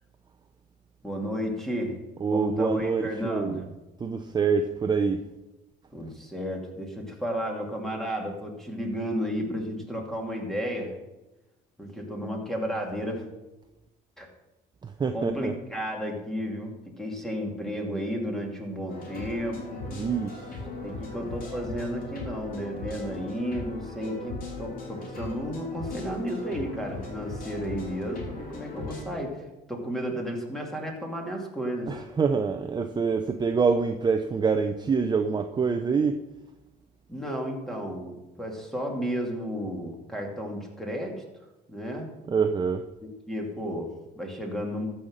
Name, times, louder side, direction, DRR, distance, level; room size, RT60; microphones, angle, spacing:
voice 1, 1.0-3.6 5.9-11.0 11.8-13.3 14.2-14.3 15.1-19.8 20.8-32.0 37.1-41.2 41.7-42.1 43.3-44.9, equal, ahead, 0 dB, 2.7 m, -33 dB
voice 2, 2.2-3.6 4.0-5.2 14.8-15.5 19.9-20.6 31.9-36.2 42.3-42.8, right 5 dB, 25° right, 7 dB, 0.6 m, -26 dB
sound 1, 18.9-29.0, left 2 dB, 60° left, 3.7 m, -39 dB
14.0 x 5.7 x 6.5 m, 1.0 s
cardioid pair, 110°, 17 cm